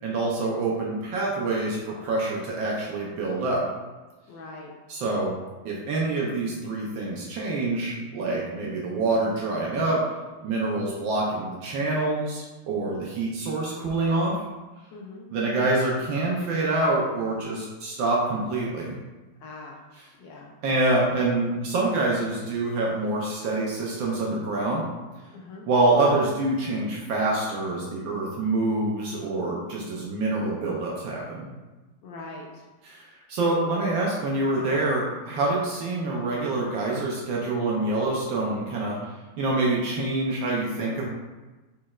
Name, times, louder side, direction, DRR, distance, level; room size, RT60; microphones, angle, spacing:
voice 1, 0.0-3.6 4.9-5.3 5.6-10.0 10.4-14.3 15.3-19.0 20.6-24.9 25.7-31.5 32.8-39.0 39.4-41.0, right 2 dB, 70° right, -3 dB, 1.4 m, -26 dB
voice 2, 4.3-4.7 14.9-15.3 19.4-19.8 20.2-20.5 25.3-25.7 32.0-32.6, left 3 dB, 70° left, -1 dB, 1.2 m, -42 dB
4.9 x 4.2 x 2.4 m, 1.2 s
omnidirectional pair, 2.2 m